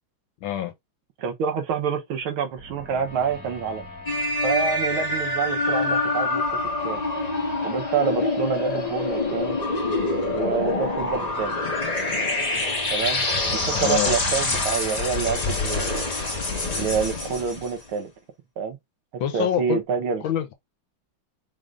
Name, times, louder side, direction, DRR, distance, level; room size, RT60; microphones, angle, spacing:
voice 1, 0.4-0.7 13.7-14.1 19.2-19.8 20.2-20.5, left 11 dB, 75° left, 1.6 m, -25 dB
voice 2, 1.2-3.9 4.4-6.4 6.8-7.0 7.6-9.6 10.3-11.6 12.9-16.1 16.8-18.1 18.6-18.8 19.1-20.2, right 6 dB, 85° right, 1.9 m, -27 dB
sound 1, 2.5-16.5, left 2 dB, 5° right, 2.1 m, -42 dB
sound 2, 4.1-17.8, left 2 dB, 25° left, 0.9 m, -26 dB
4.9 x 3.7 x 2.5 m
omnidirectional pair, 2.3 m